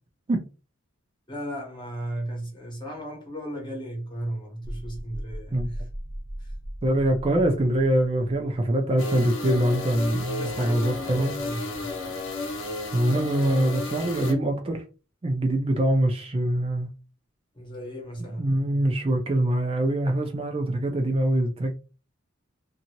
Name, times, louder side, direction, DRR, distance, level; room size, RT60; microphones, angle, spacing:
voice 1, 1.3-5.9 6.4-6.5 10.4-12.0 17.5-18.6, right 1 dB, 20° left, 1.0 m, -36 dB
sound 1, 4.6-8.6, equal, 40° right, 0.9 m, -38 dB
voice 2, 6.8-11.3 12.9-14.8 15.2-16.9 18.4-21.7, right 1 dB, 25° right, 0.3 m, -24 dB
sound 2, 9.0-14.3, left 3 dB, 65° left, 0.8 m, -33 dB
2.7 x 2.6 x 2.8 m
head